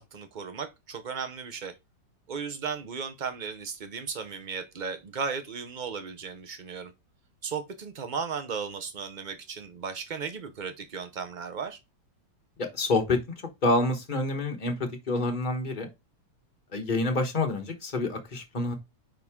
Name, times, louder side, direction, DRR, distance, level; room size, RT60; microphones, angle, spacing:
voice 1, 0.0-1.7 2.3-6.9 7.4-11.8, right 5 dB, 50° right, 0.5 m, -35 dB
voice 2, 12.7-13.2 13.6-15.9 16.7-18.7, left 2 dB, 30° left, 1.2 m, -27 dB
9.3 x 3.8 x 3.6 m
omnidirectional pair, 2.0 m